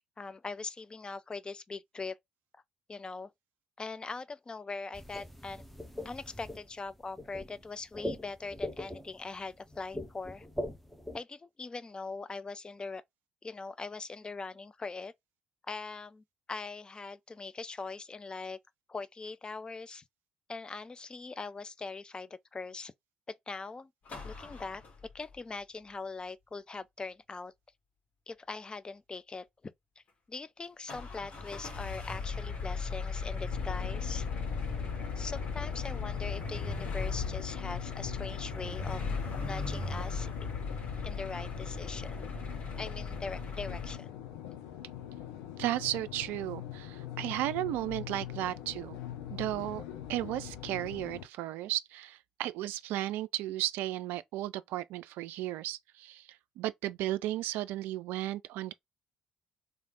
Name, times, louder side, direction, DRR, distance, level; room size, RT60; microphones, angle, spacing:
voice 1, 0.2-2.2 2.9-3.3 3.8-5.6 6.0-10.5 11.1-13.0 13.4-15.1 15.7-18.6 18.9-20.0 20.5-22.9 23.3-23.9 24.2-24.8 25.1-27.5 28.3-30.0 30.3-34.3 35.2-39.0 39.4-40.3 41.0-42.3 42.8-44.2, left 4 dB, 25° left, 0.5 m, -41 dB
sound 1, 4.9-11.2, left 1 dB, 5° left, 0.9 m, -41 dB
sound 2, 24.0-25.4 30.9-44.0, left 4 dB, 45° left, 1.6 m, -37 dB
subway ambiance, 33.5-51.3, left 11 dB, 70° left, 0.6 m, -43 dB
voice 2, 45.6-49.0 49.3-49.8 50.1-58.7, right 14 dB, 60° right, 0.3 m, -34 dB
3.3 x 2.5 x 3.8 m
figure-of-eight pair, 50°, 4 cm